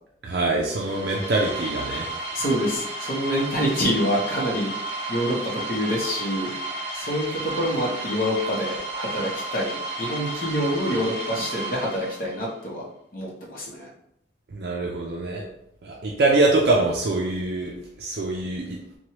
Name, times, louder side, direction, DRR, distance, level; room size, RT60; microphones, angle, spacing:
voice 1, 0.2-2.1 14.5-15.4 15.8-18.8, right 2 dB, 60° right, -2 dB, 0.4 m, -24 dB
sound 1, 0.6-12.5, right 2 dB, 35° right, 0.7 m, -33 dB
voice 2, 2.3-4.7 5.1-6.5 6.9-13.9, equal, 50° left, -4 dB, 0.9 m, -26 dB
3.1 x 2.2 x 2.8 m, 0.75 s
head